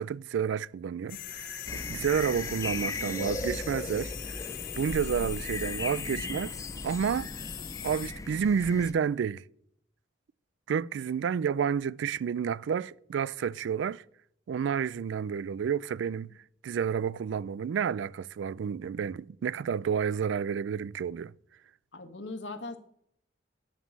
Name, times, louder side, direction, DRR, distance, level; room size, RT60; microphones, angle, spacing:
voice 1, 0.0-4.5 4.8-6.6 6.8-7.3 7.8-9.4 10.7-14.0 14.5-16.3 16.6-21.3, right 7 dB, 80° right, 0.3 m, -30 dB
sound 1, 1.1-8.1, left 11 dB, 50° left, 1.0 m, -40 dB
sound 2, 1.7-8.9, left 2 dB, 20° left, 0.5 m, -37 dB
voice 2, 21.9-22.8, left 2 dB, 75° left, 1.2 m, -39 dB
9.7 x 5.6 x 7.2 m
head